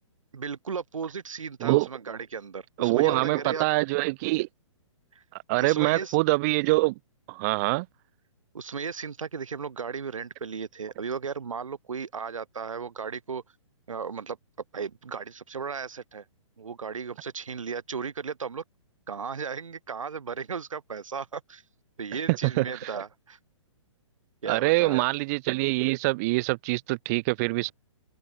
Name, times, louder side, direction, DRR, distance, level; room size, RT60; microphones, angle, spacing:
voice 1, 0.3-3.7 5.1-5.2 5.6-6.2 8.5-13.4 13.9-14.4 14.7-16.2 16.6-18.6 19.1-21.6 22.0-23.4 24.4-25.0, right 6 dB, 85° right, 2.1 m, -35 dB
voice 2, 2.8-4.5 5.5-6.9 7.3-7.9 22.3-22.9 24.5-27.7, right 24 dB, 30° right, 0.5 m, -24 dB
open air
hypercardioid pair, 140°, 16 cm